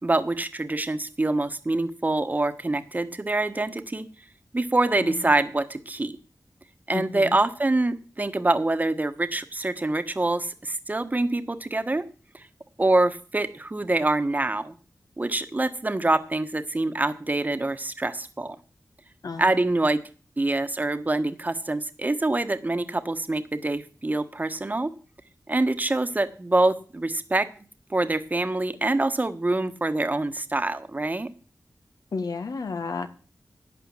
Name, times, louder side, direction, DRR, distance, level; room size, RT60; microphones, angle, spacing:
voice 1, 0.0-4.1 4.5-6.1 6.9-12.0 12.3-12.4 12.8-14.7 15.2-18.6 19.4-20.0 20.4-24.9 25.5-27.5 27.9-31.3, right 2 dB, 25° right, 10 dB, 1.3 m, -25 dB
voice 2, 6.9-7.4 19.2-19.6 32.1-33.1, left 4 dB, 75° left, 10 dB, 1.5 m, -32 dB
11.5 x 9.1 x 7.4 m, 0.38 s
wide cardioid pair, 85°, 6 cm